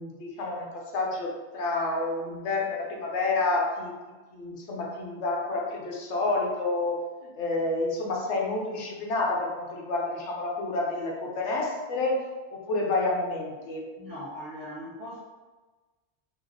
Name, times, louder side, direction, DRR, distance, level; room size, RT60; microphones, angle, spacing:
voice 1, 0.0-3.9 4.3-7.0 7.4-12.2 12.5-13.8, left 2 dB, 75° left, -1 dB, 1.1 m, -29 dB
voice 2, 14.0-15.2, equal, 30° right, -7 dB, 1.2 m, -39 dB
3.1 x 2.9 x 3.8 m, 1.3 s
omnidirectional pair, 1.2 m